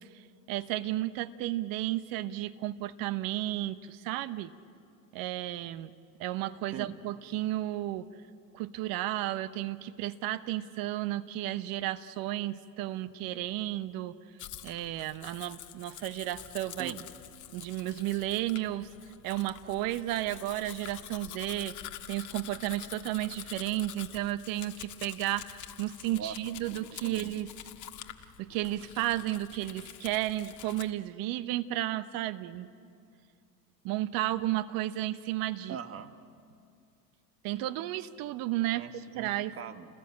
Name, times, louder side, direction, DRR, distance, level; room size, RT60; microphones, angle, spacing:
voice 1, 0.1-4.5 5.1-5.9 6.2-8.1 8.5-14.2 14.6-16.9 17.5-18.9 19.2-21.8 22.1-27.5 28.4-32.7 33.8-35.8 37.4-38.8 39.1-39.5, right 15 dB, 45° right, 14 dB, 1.0 m, -33 dB
Domestic sounds home sounds, 14.4-30.9, left 12 dB, 40° left, 1.6 m, -47 dB
voice 2, 27.0-27.3 35.7-36.1 38.7-39.9, right 8 dB, 30° right, 9 dB, 1.4 m, -41 dB
29.5 x 20.0 x 8.8 m, 2.4 s
hypercardioid pair, 95°, 48 cm